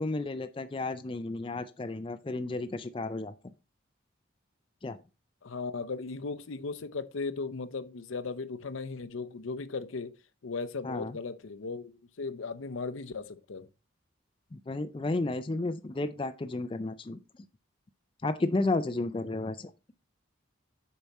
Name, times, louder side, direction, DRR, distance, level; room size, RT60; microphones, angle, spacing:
voice 1, 0.0-3.3 4.8-5.0 10.8-11.1 14.5-17.2 18.2-19.7, left 2 dB, 25° left, 0.4 m, -32 dB
voice 2, 5.4-10.1 10.4-13.7, left 4 dB, 80° left, 0.6 m, -37 dB
6.9 x 4.7 x 4.1 m
head